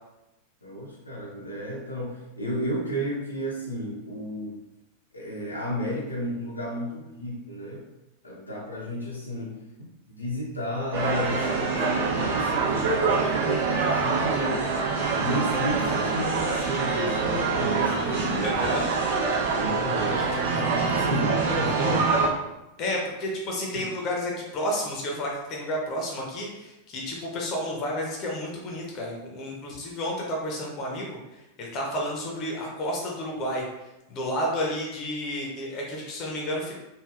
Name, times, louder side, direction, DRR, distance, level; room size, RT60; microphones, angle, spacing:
voice 1, 0.6-4.6 5.1-7.9 8.2-9.6 10.1-14.8 15.2-19.2 19.5-22.1 23.7-23.8, equal, 80° left, -4 dB, 0.7 m, -33 dB
sound 1, 10.9-22.3, right 4 dB, 60° right, 0.9 m, -25 dB
voice 2, 18.4-18.9 20.2-20.3 22.8-33.6 34.1-36.8, left 1 dB, 35° left, -1 dB, 0.7 m, -31 dB
3.3 x 2.4 x 2.4 m, 0.97 s
figure-of-eight pair, 90°, 0 cm